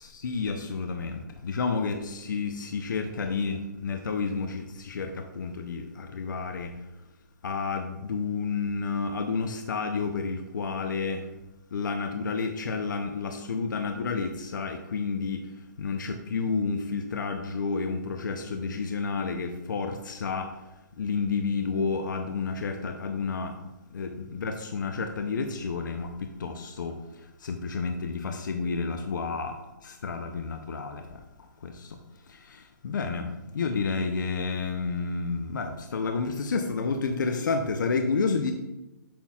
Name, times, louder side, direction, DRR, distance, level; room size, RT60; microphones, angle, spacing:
voice 1, 0.0-6.8 7.4-11.3 11.7-20.6 21.0-23.6 23.9-38.5, left 4 dB, 70° left, 6 dB, 0.6 m, -30 dB
8.6 x 5.5 x 2.4 m, 1.0 s
hypercardioid pair, 165°, 11 cm